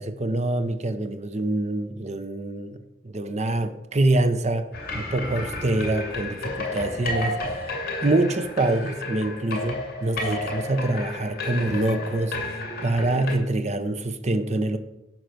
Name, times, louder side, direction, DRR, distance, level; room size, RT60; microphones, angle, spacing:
voice 1, 0.0-4.7 4.9-7.4 8.0-12.4 12.8-14.8, right 2 dB, 35° right, 0.8 m, -25 dB
sound 1, 4.7-13.3, left 2 dB, 50° left, 2.3 m, -32 dB
11.5 x 4.7 x 7.9 m
head